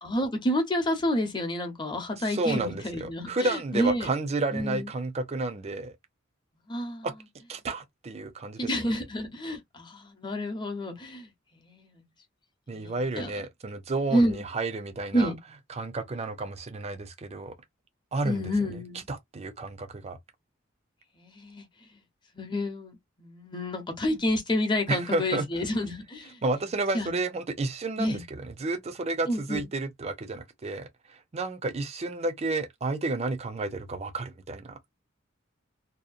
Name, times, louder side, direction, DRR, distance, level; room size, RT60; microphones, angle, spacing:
voice 1, 0.0-4.1 4.5-4.9 6.7-7.1 8.6-12.0 12.7-13.4 14.1-14.4 15.1-15.4 18.2-19.1 21.1-21.7 22.3-26.4 26.9-27.1 28.0-28.2 29.3-29.7, equal, 25° left, 0.8 m, -29 dB
voice 2, 2.3-5.9 7.0-7.1 7.5-8.7 12.7-15.3 15.8-17.5 18.1-18.4 19.1-20.2 24.9-25.5 26.4-34.8, right 3 dB, 30° right, 0.5 m, -31 dB
2.8 x 2.0 x 2.4 m
head